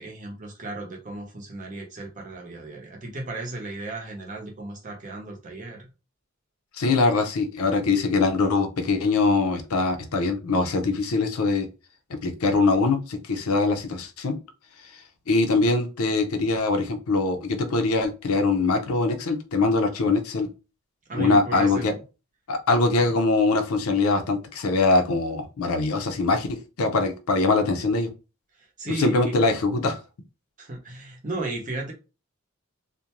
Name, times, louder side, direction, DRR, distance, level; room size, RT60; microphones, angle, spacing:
voice 1, 0.0-5.9 21.1-22.0 22.8-23.1 28.6-29.3 30.6-31.9, right 2 dB, 35° right, 0.7 m, -35 dB
voice 2, 6.7-11.7 12.1-14.4 14.8-14.9 15.3-20.5 21.1-21.9 22.5-28.1 28.9-30.0, left 3 dB, 80° left, 0.5 m, -23 dB
2.5 x 2.1 x 2.9 m
head